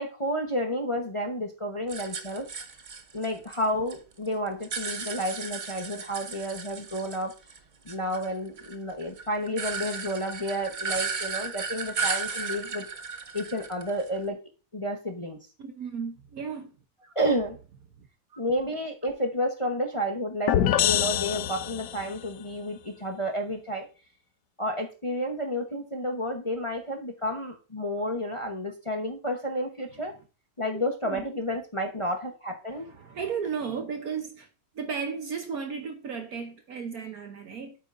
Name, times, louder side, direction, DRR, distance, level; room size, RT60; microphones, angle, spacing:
voice 1, 0.0-2.5 3.1-7.3 7.8-12.8 13.3-14.4 14.7-15.4 17.1-17.6 18.4-23.9 24.6-30.1 30.6-32.9, equal, 25° left, 0.7 m, -31 dB
sound 1, 1.9-4.0 4.3-7.6 7.9-14.2, right 5 dB, 75° right, 0.4 m, -35 dB
voice 2, 15.6-16.7 17.0-17.1 18.0-18.1 31.0-31.2 32.7-34.5 34.7-37.7, right 6 dB, 60° right, 1.2 m, -34 dB
sound 2, 20.5-22.2, left 11 dB, 70° left, 1.1 m, -25 dB
8.8 x 8.3 x 2.6 m
omnidirectional pair, 2.1 m